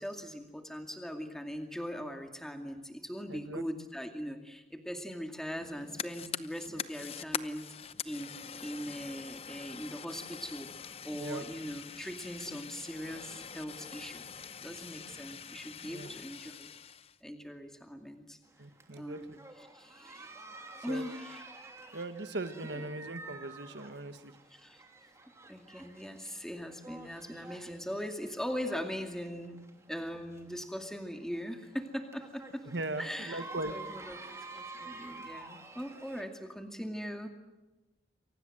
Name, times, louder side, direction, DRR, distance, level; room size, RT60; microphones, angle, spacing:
voice 1, 0.0-16.7 17.2-18.4 18.9-20.3 20.8-21.5 22.6-22.9 24.5-24.8 25.5-32.7 33.0-37.3, equal, 5° left, 4 dB, 2.3 m, -41 dB
voice 2, 3.3-3.6 11.1-11.4 15.8-16.1 18.6-19.4 20.9-21.0 21.9-24.3 32.7-33.7, right 2 dB, 85° right, 9 dB, 1.5 m, -39 dB
Fire, 5.6-17.2, left 7 dB, 35° left, 0.8 m, -44 dB
sound 1, 18.4-36.2, right 3 dB, 15° right, 2.9 m, -50 dB
29.0 x 24.0 x 7.8 m, 1.1 s
head